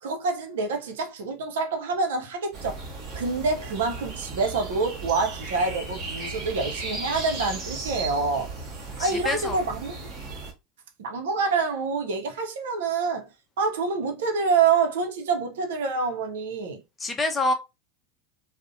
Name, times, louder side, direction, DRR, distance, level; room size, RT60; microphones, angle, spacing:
voice 1, 0.0-2.8 3.1-8.5 9.0-10.0 11.0-13.3 13.6-16.8, right 4 dB, 70° right, 0.5 m, -26 dB
sound 1, 2.5-10.5, right 3 dB, 50° right, 0.9 m, -36 dB
voice 2, 9.0-9.6 17.0-17.5, left 2 dB, 20° left, 0.6 m, -26 dB
2.5 x 2.0 x 2.5 m
hypercardioid pair, 80°, 0 cm